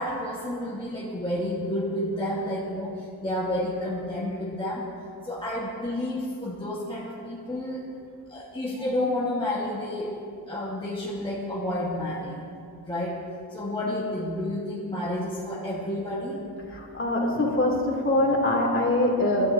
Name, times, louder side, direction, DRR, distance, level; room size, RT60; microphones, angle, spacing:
voice 1, 0.0-4.9 5.2-7.8 8.3-12.5 12.8-13.2 13.5-16.4, left 1 dB, 10° left, -6 dB, 1.5 m, -30 dB
voice 2, 16.7-19.5, left 1 dB, 30° left, -2 dB, 2.9 m, -23 dB
27.0 x 13.0 x 2.8 m, 2.4 s
wide cardioid pair, 155°, 40 cm